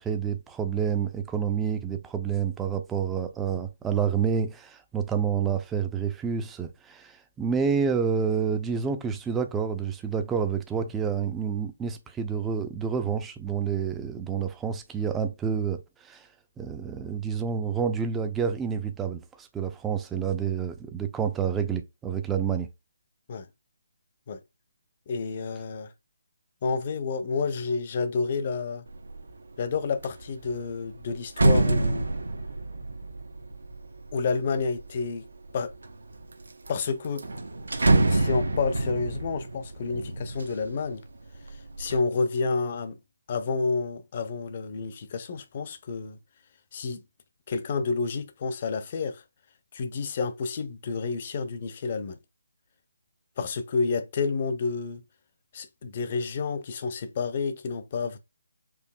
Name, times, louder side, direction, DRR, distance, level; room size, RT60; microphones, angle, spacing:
voice 1, 0.0-16.3 16.6-22.7, right 7 dB, 10° right, 0.4 m, -28 dB
voice 2, 25.1-25.9 26.6-28.9 29.6-32.1 34.1-35.3 35.5-35.7 36.7-37.2 38.1-41.0 41.8-43.0 43.3-46.2 46.7-47.0 47.5-49.2 49.7-52.2 53.4-55.0 55.5-58.2, left 4 dB, 40° left, 0.6 m, -29 dB
sound 1, 28.9-29.3 29.7-35.0 35.6-36.3 36.7-36.8 37.0-41.0 41.4-42.0, right 2 dB, 80° right, 0.7 m, -27 dB
4.7 x 2.6 x 2.2 m
figure-of-eight pair, 155°, 0 cm